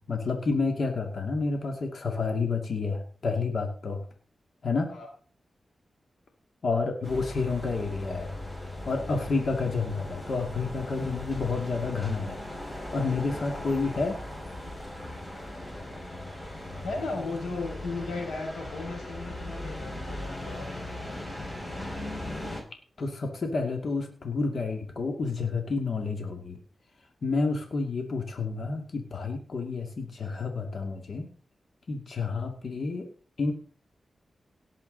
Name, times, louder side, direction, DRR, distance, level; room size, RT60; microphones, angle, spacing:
voice 1, 0.1-4.0 4.6-4.9 6.6-8.3 8.9-12.4 12.9-14.2 23.0-26.6 27.2-31.3 31.9-33.1 33.4-33.5, left 4 dB, 65° left, 3 dB, 2.3 m, -29 dB
sound 1, 7.0-22.6, left 1 dB, 25° left, 6.2 m, -38 dB
voice 2, 16.8-20.8, left 3 dB, 85° left, 1 dB, 5.8 m, -36 dB
18.0 x 7.5 x 4.0 m, 0.42 s
cardioid pair, 60°, 0 cm